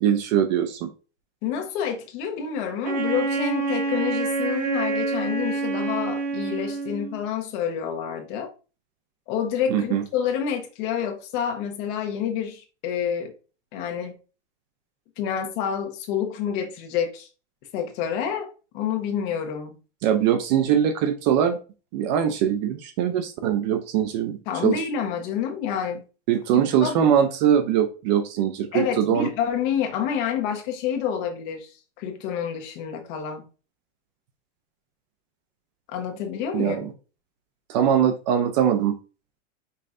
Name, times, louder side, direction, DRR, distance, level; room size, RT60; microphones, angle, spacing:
voice 1, 0.0-0.9 9.7-10.0 20.0-21.6 21.9-24.4 24.6-24.8 26.3-29.3 36.5-36.9 37.7-39.0, right 9 dB, 35° right, 0.5 m, -22 dB
voice 2, 1.4-8.5 9.3-13.3 13.7-14.1 15.2-17.3 17.7-19.8 24.5-26.0 26.5-27.0 28.7-33.4 35.9-36.9, left 8 dB, 40° left, 1.2 m, -28 dB
Wind instrument woodwind instrument, 2.8-7.2, right 3 dB, 50° right, 1.6 m, -27 dB
5.5 x 3.8 x 2.5 m
supercardioid pair, 165°, 37 cm